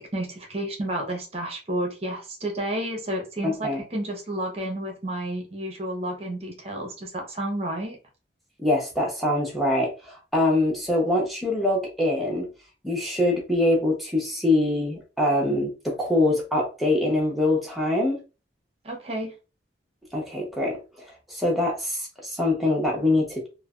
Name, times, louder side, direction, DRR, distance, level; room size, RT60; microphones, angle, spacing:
voice 1, 0.0-8.0 18.8-19.3, right 1 dB, 35° right, 2 dB, 0.8 m, -31 dB
voice 2, 3.4-3.8 8.6-12.5 12.8-18.2 20.1-20.8 21.3-23.5, left 1 dB, ahead, -3 dB, 0.8 m, -24 dB
3.2 x 2.1 x 2.4 m, 0.32 s
head